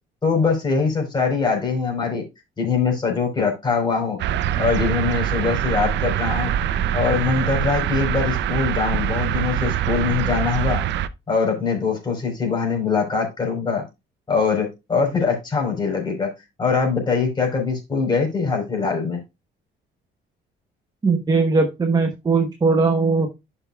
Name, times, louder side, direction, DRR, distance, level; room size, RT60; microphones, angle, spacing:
voice 1, 0.2-2.2 2.6-4.2 4.6-6.5 6.9-10.8 11.3-13.8 14.3-16.3 16.6-19.2, left 5 dB, 20° left, 0 dB, 4.1 m, -22 dB
sound 1, 4.2-11.1, right 10 dB, 65° right, 0.6 m, -24 dB
voice 2, 21.0-23.3, right 4 dB, 20° right, 5 dB, 0.9 m, -19 dB
11.5 x 5.9 x 2.3 m, 0.24 s
cardioid pair, 140°, 20 cm